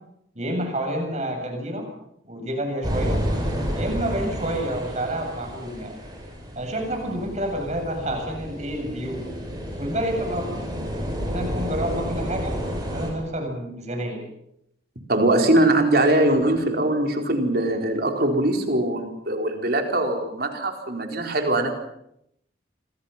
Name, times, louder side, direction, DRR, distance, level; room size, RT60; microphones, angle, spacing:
voice 1, 0.3-1.9 2.2-3.2 3.7-5.9 6.6-9.2 9.8-10.5 11.3-12.6 12.9-14.2, right 1 dB, 35° right, 3 dB, 8.0 m, -29 dB
sound 1, 2.8-13.1, equal, 20° right, 7.3 m, -30 dB
voice 2, 15.1-21.7, right 1 dB, 55° right, 3 dB, 4.4 m, -21 dB
29.0 x 25.5 x 5.9 m, 0.78 s
head